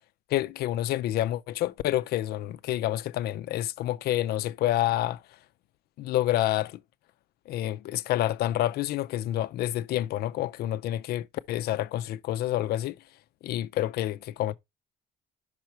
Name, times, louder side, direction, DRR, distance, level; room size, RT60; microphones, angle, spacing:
voice 1, 0.3-5.2 6.0-6.8 7.5-13.0 13.4-14.5, left 14 dB, 70° left, 0.5 m, -28 dB
5.7 x 4.6 x 4.3 m
cardioid pair, 110°, 17 cm